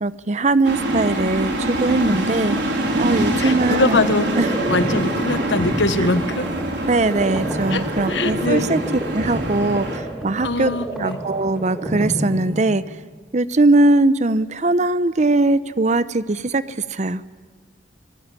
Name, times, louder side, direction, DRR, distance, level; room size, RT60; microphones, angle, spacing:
voice 1, 0.0-2.6 3.0-4.0 4.4-4.5 6.9-8.8 9.1-10.7 11.0-12.8 13.3-16.6 16.9-17.2, right 2 dB, 40° right, 15 dB, 0.7 m, -20 dB
sound 1, 0.6-10.0, right 1 dB, 75° right, 3.8 m, -24 dB
sound 2, 2.5-13.1, right 1 dB, ahead, 3.8 m, -30 dB
voice 2, 3.3-6.5 7.7-8.7 10.4-11.2, left 2 dB, 85° left, 11 dB, 1.3 m, -23 dB
25.5 x 19.5 x 9.7 m, 1.5 s
head